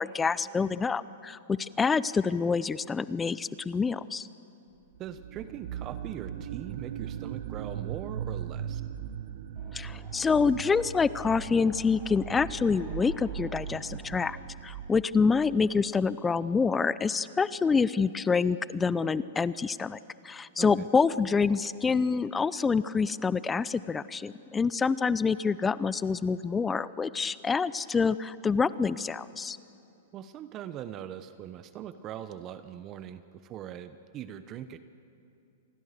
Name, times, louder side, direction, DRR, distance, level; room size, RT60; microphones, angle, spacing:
voice 1, 0.0-4.3 9.7-14.4 14.6-20.0 20.2-29.6, left 5 dB, 15° left, 17 dB, 0.5 m, -27 dB
voice 2, 5.0-8.8 20.6-20.7 30.1-34.8, right 10 dB, 35° right, 12 dB, 0.9 m, -41 dB
sound 1, 5.0-15.6, right 8 dB, 65° right, 1.1 m, -39 dB
Wind, 9.5-14.1, equal, ahead, 7.8 m, -53 dB
27.5 x 20.5 x 6.7 m, 2.7 s
hypercardioid pair, 120°, 0 cm